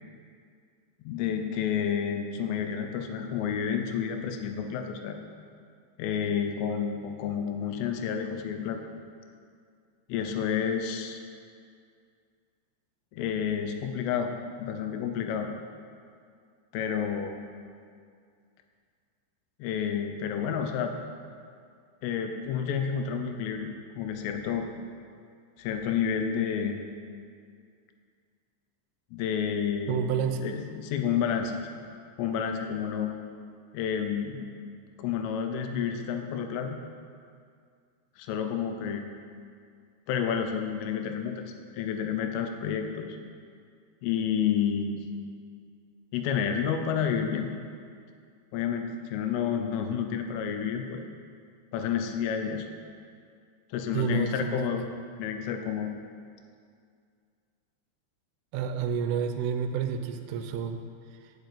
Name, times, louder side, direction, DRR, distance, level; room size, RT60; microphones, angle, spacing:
voice 1, 1.0-5.2 6.0-8.8 10.1-11.2 13.1-14.3 14.6-15.5 16.7-17.4 19.6-20.9 22.0-24.7 25.6-26.8 29.1-30.0 30.4-31.5 32.2-33.1 33.7-34.5 35.0-36.8 38.2-39.0 40.1-43.2 44.0-45.1 46.1-47.5 48.5-51.0 51.7-52.7 53.7-54.8 55.2-55.9, left 7 dB, 90° left, 5 dB, 3.4 m, -30 dB
voice 2, 29.9-30.5 53.9-54.7 58.5-60.8, right 7 dB, 85° right, 7 dB, 3.3 m, -29 dB
11.5 x 6.5 x 8.4 m, 2.2 s
omnidirectional pair, 5.6 m